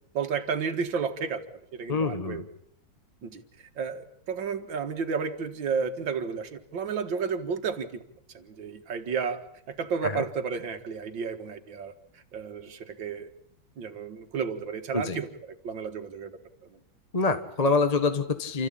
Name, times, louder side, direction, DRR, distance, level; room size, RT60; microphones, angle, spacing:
voice 1, 0.1-2.4 3.2-8.0 8.3-13.3 13.8-16.4 16.7-16.8, right 6 dB, 70° right, 6 dB, 2.3 m, -32 dB
voice 2, 1.9-2.5 10.0-10.2 14.9-15.2 17.1-18.7, left 4 dB, 25° left, 8 dB, 1.0 m, -26 dB
29.5 x 14.0 x 8.7 m, 0.73 s
omnidirectional pair, 2.1 m